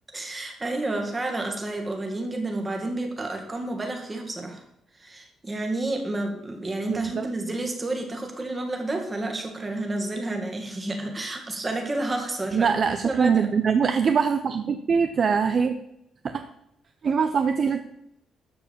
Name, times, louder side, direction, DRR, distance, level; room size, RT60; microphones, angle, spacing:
voice 1, 0.1-4.6 4.9-12.8 13.0-13.5, right 2 dB, 15° right, 3 dB, 1.9 m, -30 dB
voice 2, 6.9-7.3 12.5-15.7 16.2-16.4 17.0-17.8, right 6 dB, 35° right, 8 dB, 0.6 m, -23 dB
13.0 x 4.9 x 8.5 m, 0.80 s
cardioid pair, 175°, 0 cm